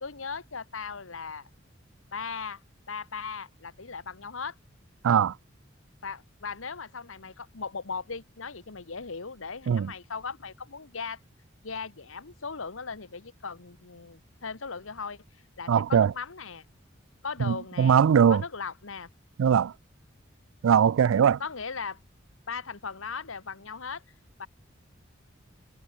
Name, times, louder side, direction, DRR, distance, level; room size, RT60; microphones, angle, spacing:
voice 1, 0.0-1.5 2.1-2.6 2.9-4.6 6.0-11.2 11.6-16.6 17.2-18.0 18.3-19.1 21.4-22.0 22.5-24.0 24.4-24.5, left 5 dB, 85° left, 1.4 m, -38 dB
voice 2, 15.7-16.1 17.4-18.4 19.4-19.7 20.6-21.4, right 7 dB, 85° right, 0.3 m, -21 dB
head